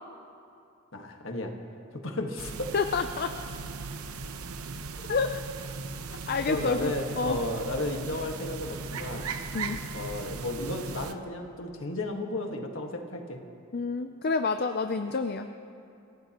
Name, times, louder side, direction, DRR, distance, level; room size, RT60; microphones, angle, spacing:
voice 1, 0.9-1.5 1.9-2.7 6.5-9.3 9.9-13.4, left 2 dB, 60° left, 2 dB, 1.6 m, -33 dB
sound 1, 2.4-11.1, right 4 dB, 90° right, 0.9 m, -38 dB
voice 2, 2.7-3.4 5.0-5.4 6.3-7.4 9.5-9.8 13.7-15.5, left 4 dB, 45° left, 7 dB, 0.5 m, -29 dB
27.5 x 16.5 x 3.0 m, 2.6 s
head